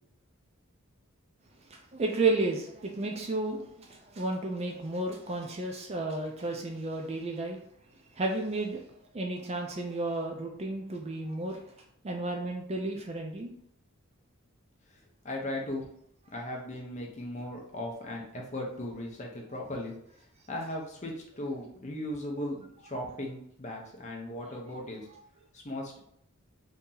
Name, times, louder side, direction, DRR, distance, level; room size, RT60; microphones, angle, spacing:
voice 1, 1.7-7.6 8.2-8.8 9.1-11.6 12.0-13.5 25.1-25.2, right 2 dB, 30° right, 2 dB, 0.4 m, -32 dB
voice 2, 15.2-15.8 16.3-19.9 20.5-25.0 25.5-26.0, left 1 dB, 30° left, 0 dB, 0.6 m, -37 dB
2.8 x 2.7 x 3.8 m, 0.69 s
head